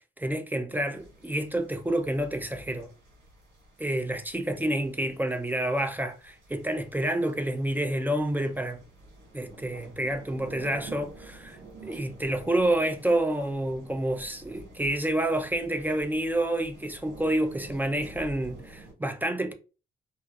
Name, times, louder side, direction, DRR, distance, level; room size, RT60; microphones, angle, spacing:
voice 1, 0.2-2.9 3.8-8.8 9.3-19.5, right 1 dB, 10° right, 0.4 m, -29 dB
sound 1, 0.9-18.9, right 2 dB, 70° right, 1.4 m, -49 dB
2.4 x 2.4 x 2.3 m
cardioid pair, 90°, 20 cm